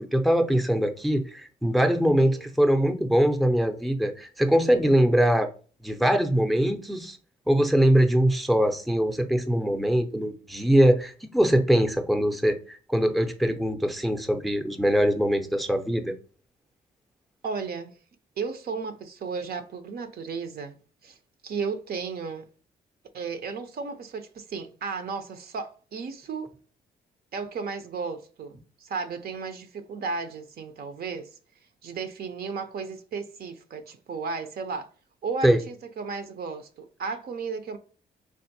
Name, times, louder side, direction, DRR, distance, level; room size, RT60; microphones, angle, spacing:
voice 1, 0.0-5.5 5.8-7.2 7.5-16.1 35.4-35.6, equal, ahead, 0.5 m, -22 dB
voice 2, 2.2-2.5 17.4-17.9 18.4-20.8 21.0-21.2 21.4-22.5 23.1-26.5 27.3-31.4 31.8-34.9 35.2-37.8, right 5 dB, 55° right, 0.6 m, -34 dB
3.4 x 2.5 x 2.7 m
supercardioid pair, 55°, 19 cm